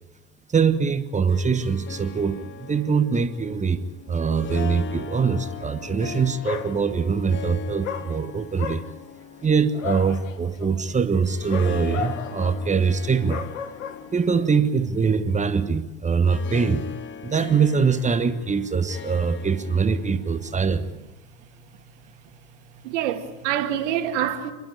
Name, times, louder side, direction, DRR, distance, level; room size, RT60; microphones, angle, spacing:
voice 1, 0.5-8.8 9.4-13.5 14.1-20.9, right 5 dB, 20° right, 11 dB, 1.3 m, -23 dB
Harp, 1.1-20.9, left 8 dB, 30° left, 1.2 m, -40 dB
Dog, 6.0-6.2 6.4-7.2 7.8-14.5, left 8 dB, 70° left, 1.5 m, -35 dB
voice 2, 22.7-24.5, right 10 dB, 60° right, 6 dB, 2.3 m, -26 dB
30.0 x 12.0 x 9.6 m, 1.1 s
figure-of-eight pair, 70°, 40 cm